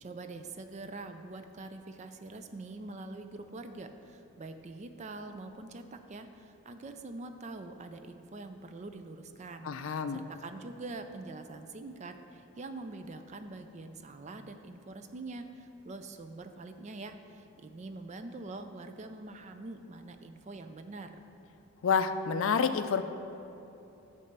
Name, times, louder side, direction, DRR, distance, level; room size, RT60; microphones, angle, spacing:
voice 1, 0.0-21.2, right 2 dB, 35° right, 7 dB, 0.4 m, -44 dB
voice 2, 9.6-10.2 21.8-23.0, left 6 dB, 70° left, 10 dB, 0.4 m, -28 dB
9.8 x 3.3 x 6.6 m, 2.9 s
head